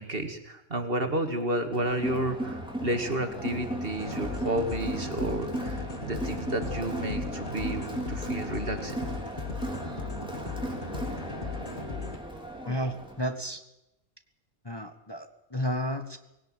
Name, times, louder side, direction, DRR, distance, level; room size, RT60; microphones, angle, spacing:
voice 1, 0.0-9.0, right 1 dB, 45° right, 7 dB, 2.4 m, -31 dB
Crowd, 1.7-13.3, right 1 dB, 5° right, 4.0 m, -36 dB
sound 1, 4.0-12.2, left 4 dB, 40° left, 2.5 m, -37 dB
voice 2, 12.6-13.6 14.6-16.2, equal, 20° left, 7 dB, 1.4 m, -32 dB
20.0 x 18.0 x 7.6 m, 0.88 s
omnidirectional pair, 1.3 m